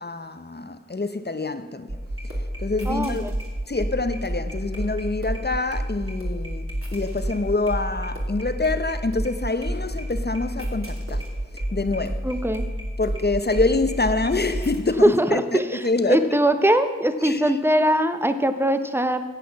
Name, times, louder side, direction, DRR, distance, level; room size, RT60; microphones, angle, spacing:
voice 1, 0.0-1.9 2.6-3.3 3.7-6.7 6.9-11.2 11.7-12.2 13.0-16.3 17.2-17.5, left 3 dB, 35° left, 0.9 m, -26 dB
sound 1, 1.9-15.2 15.7-16.1 16.4-16.5, equal, 45° right, 3.0 m, -30 dB
voice 2, 2.9-3.3 12.2-12.7 15.0-19.2, right 1 dB, 5° right, 0.9 m, -21 dB
10.5 x 8.4 x 7.1 m
wide cardioid pair, 50°, 31 cm